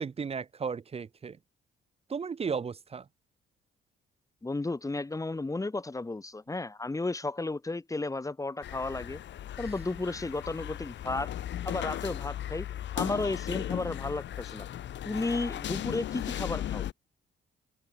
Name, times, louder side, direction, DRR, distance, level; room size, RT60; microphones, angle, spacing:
voice 1, 0.0-1.4 2.1-3.0, right 6 dB, 30° right, 0.6 m, -34 dB
voice 2, 4.4-9.2 9.6-11.3 11.7-12.7 13.0-14.7 15.1-16.9, left 2 dB, 15° left, 1.9 m, -33 dB
sound 1, 8.6-16.9, left 11 dB, 65° left, 1.2 m, -36 dB
cardioid pair, 90°, 20 cm